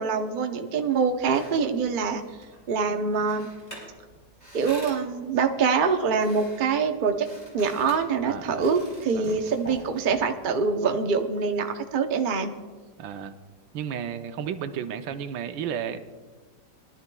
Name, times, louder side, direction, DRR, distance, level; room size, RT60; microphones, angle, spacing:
voice 1, 0.0-2.2 2.7-3.5 4.5-7.3 7.5-12.6, right 5 dB, 55° right, 5 dB, 0.5 m, -25 dB
sound 1, 0.9-10.6, right 1 dB, 20° left, 4.8 m, -47 dB
voice 2, 8.2-8.7 9.1-9.4 13.0-13.3 13.7-16.0, right 8 dB, 85° right, 9 dB, 1.4 m, -33 dB
22.5 x 12.0 x 2.3 m, 1.4 s
omnidirectional pair, 2.0 m